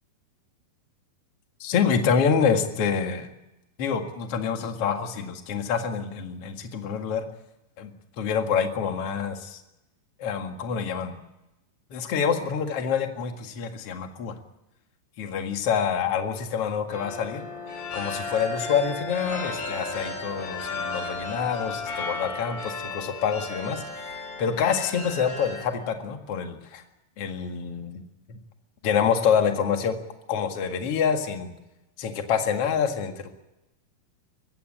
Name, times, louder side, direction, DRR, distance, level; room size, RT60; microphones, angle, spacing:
voice 1, 1.6-3.3 3.8-7.3 7.8-9.6 10.2-11.2 11.9-14.3 15.2-17.4 17.9-23.8 24.4-26.8 27.2-28.0 28.3-28.4 28.8-30.0 30.3-31.5 32.0-33.3, left 7 dB, 45° left, 5 dB, 2.4 m, -26 dB
sound 1, 16.9-25.6, left 3 dB, 80° left, 6.6 m, -34 dB
23.0 x 16.0 x 8.8 m, 0.97 s
omnidirectional pair, 4.5 m